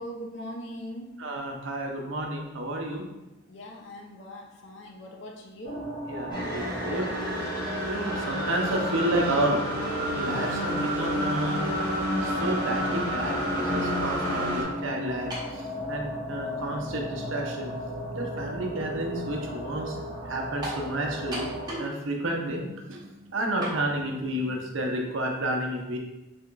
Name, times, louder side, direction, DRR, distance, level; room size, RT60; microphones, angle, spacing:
voice 1, 0.0-1.2 3.5-5.8, equal, 65° left, 0 dB, 0.7 m, -40 dB
voice 2, 1.2-3.0 6.1-7.1 7.9-9.6 10.1-11.6 12.2-17.7 18.1-21.5 21.8-26.0, right 1 dB, 75° right, 1 dB, 0.7 m, -31 dB
sound 1, 5.6-21.8, equal, 40° left, 1.1 m, -36 dB
sound 2, 6.3-14.6, equal, 20° left, 1.3 m, -30 dB
sound 3, 15.3-15.6 16.5-16.6 20.6-20.9 21.3-22.0 22.2-22.3 23.6-23.8, right 1 dB, 20° right, 1.1 m, -34 dB
3.5 x 2.9 x 3.5 m, 1.0 s
head